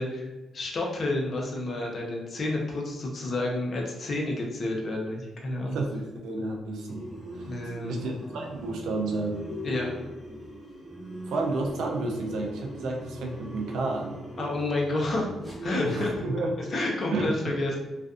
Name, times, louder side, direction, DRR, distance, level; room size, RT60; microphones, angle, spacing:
voice 1, 0.0-5.8 7.5-8.0 9.6-9.9 14.4-15.3 15.6-16.2 16.7-17.8, left 2 dB, 50° left, -1 dB, 0.6 m, -30 dB
voice 2, 5.6-7.0 7.3-7.5 7.9-9.5 11.3-14.2 15.8-16.5 17.1-17.5, right 2 dB, 80° right, 1 dB, 0.4 m, -31 dB
sound 1, 6.9-15.8, right 1 dB, 15° right, 0.8 m, -41 dB
2.5 x 2.2 x 2.4 m, 1.1 s
supercardioid pair, 70°, 0 cm